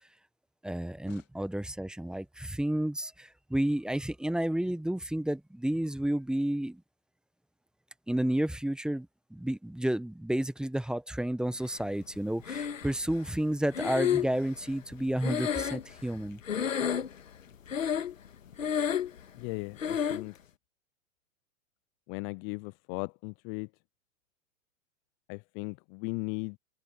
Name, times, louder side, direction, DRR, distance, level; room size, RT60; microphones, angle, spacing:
voice 1, 0.6-6.8 8.1-16.4, right 1 dB, ahead, 1.3 m, -31 dB
Breathing, 12.4-13.2 13.7-16.2 16.5-17.3 17.7-18.3 18.5-19.2 19.8-20.3, left 8 dB, 80° left, 2.1 m, -30 dB
voice 2, 19.4-20.4 22.1-23.7 25.3-26.6, left 34 dB, 30° left, 0.6 m, -37 dB
hypercardioid pair, 105°, 39 cm